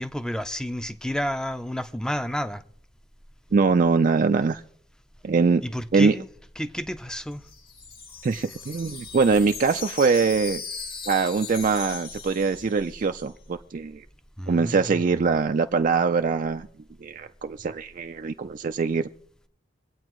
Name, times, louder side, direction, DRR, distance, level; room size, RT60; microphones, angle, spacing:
voice 1, 0.0-2.6 5.6-6.3 6.6-7.5 14.4-15.1, equal, 5° left, 0.5 m, -30 dB
voice 2, 3.5-4.6 5.2-5.6 5.9-6.1 8.2-10.6 11.1-14.0 14.5-16.7 17.0-19.1, right 4 dB, 45° right, 0.4 m, -23 dB
Wind chime, 7.2-13.2, left 5 dB, 55° left, 2.0 m, -38 dB
25.5 x 8.6 x 3.1 m
head